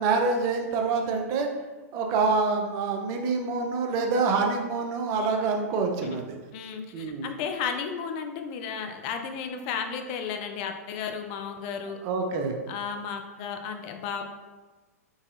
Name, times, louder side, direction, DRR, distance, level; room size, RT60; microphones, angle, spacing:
voice 1, 0.0-1.5 1.9-6.4 6.9-7.3 12.0-12.6, right 4 dB, 40° right, 3 dB, 0.6 m, -26 dB
voice 2, 6.5-12.0 12.7-14.2, left 6 dB, 45° left, 6 dB, 0.4 m, -33 dB
3.9 x 3.8 x 2.5 m, 1.2 s
hypercardioid pair, 110°, 8 cm